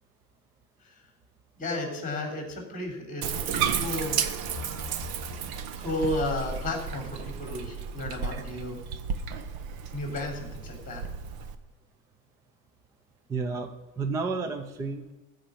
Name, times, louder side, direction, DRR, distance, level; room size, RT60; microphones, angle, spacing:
voice 1, 1.6-4.2 5.8-8.7 9.9-11.0, left 2 dB, 15° left, 2 dB, 3.4 m, -33 dB
Bathtub (filling or washing), 3.2-11.6, right 7 dB, 50° right, 1.1 m, -33 dB
voice 2, 13.3-13.7 14.0-15.1, right 4 dB, 10° right, 7 dB, 0.3 m, -31 dB
15.0 x 5.1 x 8.3 m, 1.1 s
supercardioid pair, 145°, 47 cm